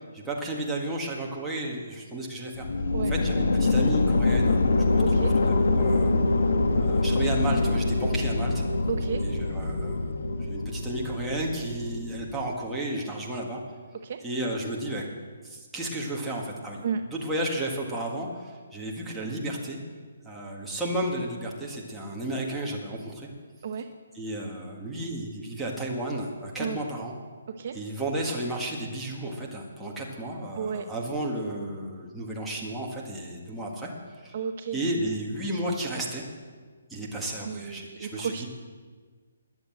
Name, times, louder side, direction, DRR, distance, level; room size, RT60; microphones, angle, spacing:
voice 1, 0.1-2.7 3.1-6.1 6.8-8.7 9.2-10.1 10.4-13.6 14.2-15.0 15.4-19.8 20.2-23.3 24.1-27.1 27.7-33.9 34.2-34.3 34.7-36.2 36.9-38.5, right 1 dB, 5° right, -5 dB, 1.7 m, -33 dB
sound 1, 2.6-12.5, left 2 dB, 80° left, 1.5 m, -25 dB
voice 2, 5.0-5.3 8.9-9.2 14.0-14.2 16.8-17.0 23.6-23.9 26.6-26.8 27.6-27.8 30.6-30.9 34.3-34.8 37.4-38.5, right 7 dB, 40° right, 6 dB, 0.8 m, -32 dB
21.5 x 8.0 x 7.7 m, 1.5 s
hypercardioid pair, 175°, 0 cm